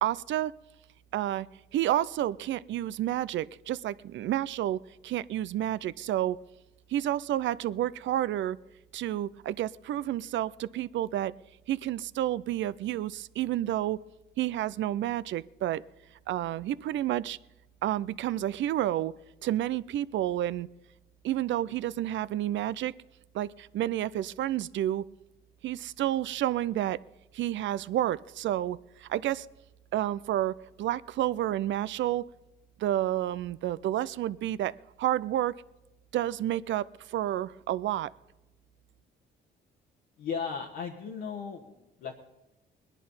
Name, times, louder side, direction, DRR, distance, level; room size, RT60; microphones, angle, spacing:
voice 1, 0.0-0.5 1.1-1.5 1.7-6.4 6.9-8.6 8.9-11.3 11.7-14.0 14.4-15.8 16.3-17.4 17.8-19.1 19.4-20.7 21.2-22.9 23.3-25.0 25.6-27.0 27.3-29.5 29.9-32.3 32.8-35.6 36.1-38.1, right 13 dB, 70° right, 19 dB, 0.5 m, -30 dB
voice 2, 40.2-42.2, left 6 dB, 80° left, 0 dB, 1.3 m, -36 dB
19.5 x 11.0 x 5.5 m, 1.0 s
cardioid pair, 90°, 20 cm